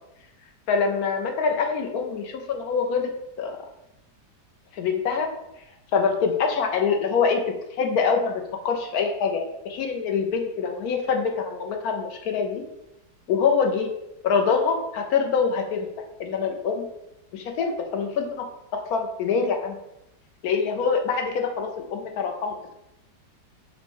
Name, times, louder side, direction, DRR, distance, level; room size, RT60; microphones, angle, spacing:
voice 1, 0.7-3.1 3.4-3.6 4.7-5.3 5.9-12.6 13.3-13.9 14.2-15.9 16.2-16.9 17.3-18.4 18.9-19.8 20.4-22.7, left 5 dB, 70° left, 4 dB, 1.0 m, -25 dB
5.2 x 2.2 x 4.5 m, 0.88 s
omnidirectional pair, 1.8 m